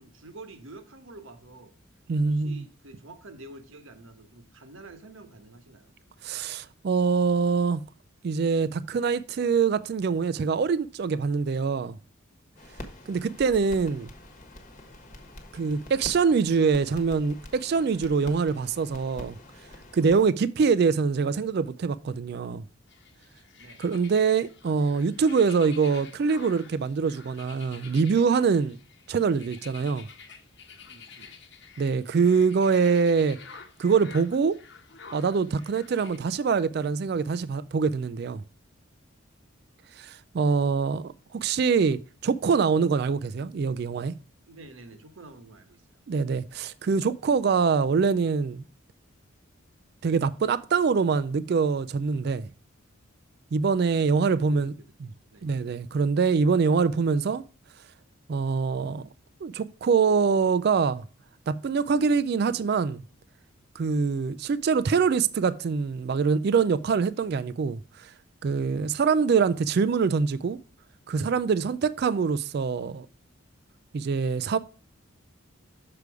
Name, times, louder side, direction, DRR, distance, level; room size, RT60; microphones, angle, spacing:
voice 1, 0.0-1.7 2.2-5.9 23.6-23.8 30.8-31.4 44.4-45.8 54.0-54.9 55.3-55.5, right 2 dB, 70° right, 1.1 m, -48 dB
voice 2, 2.1-2.6 6.2-7.8 8.2-12.0 13.1-14.1 15.5-19.4 19.9-22.6 23.8-28.8 29.1-30.1 31.8-33.4 33.8-34.6 35.1-38.4 40.0-44.1 46.1-48.6 50.0-52.5 53.5-54.7 55.4-57.4 58.3-59.0 59.4-61.0 61.5-63.0 63.8-67.8 68.4-70.6 71.1-73.1 73.9-74.6, right 5 dB, 50° right, 0.3 m, -24 dB
sound 1, 12.5-20.2, left 1 dB, 35° left, 1.2 m, -45 dB
sound 2, 22.9-36.2, left 5 dB, 55° left, 1.0 m, -49 dB
6.7 x 4.9 x 4.7 m
head